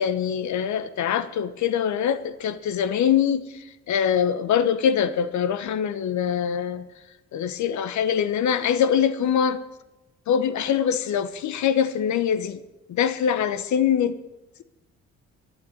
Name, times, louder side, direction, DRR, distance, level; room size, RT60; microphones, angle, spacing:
voice 1, 0.0-6.9 7.3-9.6 10.3-12.6 12.9-14.2, left 8 dB, 70° left, 1.1 m, -23 dB
11.5 x 11.0 x 9.5 m
cardioid pair, 90°, 30 cm